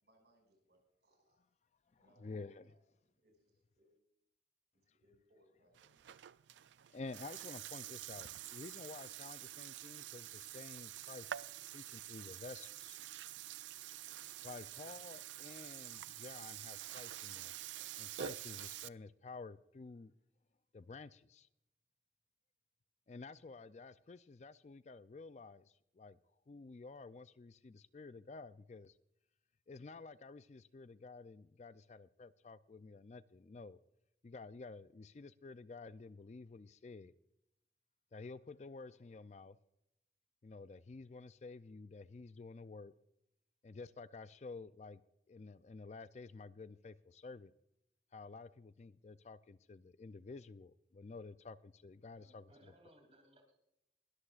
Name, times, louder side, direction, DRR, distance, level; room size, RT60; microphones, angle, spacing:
voice 1, 0.0-1.4 2.0-2.3 2.6-3.9 4.7-6.0, equal, 70° right, 2 dB, 6.0 m, -73 dB
voice 2, 1.9-2.7 6.9-11.4 11.7-13.0 14.0-17.5 18.0-20.1 20.7-21.5 23.1-26.2 26.5-29.0 29.7-33.8 34.2-37.1 38.1-39.6 40.4-42.9 43.6-45.0 45.3-47.5 48.1-52.7, left 3 dB, 40° left, 14 dB, 0.4 m, -51 dB
Burping eructation, 5.7-18.9, right 12 dB, 90° right, 0.4 m, -48 dB
voice 3, 52.2-53.5, right 1 dB, 35° right, 2 dB, 2.8 m, -65 dB
21.0 x 13.0 x 2.4 m, 0.81 s
head